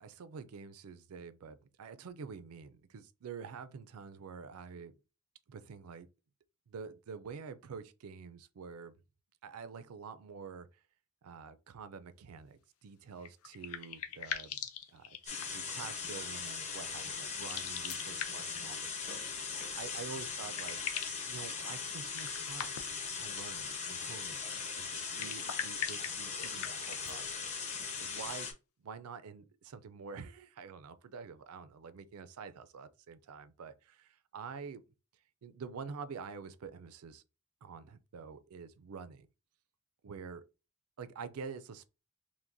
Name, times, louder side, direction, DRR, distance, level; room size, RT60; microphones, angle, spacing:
voice 1, 0.0-4.9 5.5-6.1 6.7-9.0 9.4-10.8 11.2-14.6 14.9-19.2 19.7-20.8 21.2-22.8 23.2-24.5 24.8-27.5 28.0-28.5 28.8-34.8 35.4-37.2 37.6-39.3 40.0-40.4 41.0-41.9, right 5 dB, 80° right, 0.4 m, -47 dB
sound 1, 13.2-15.7 17.3-18.6 20.0-20.1 20.3-21.3 22.1-23.1 25.0-27.2, left 8 dB, 80° left, 0.6 m, -42 dB
sound 2, 15.3-28.5, left 5 dB, 30° left, 0.8 m, -39 dB
5.8 x 2.1 x 2.6 m
head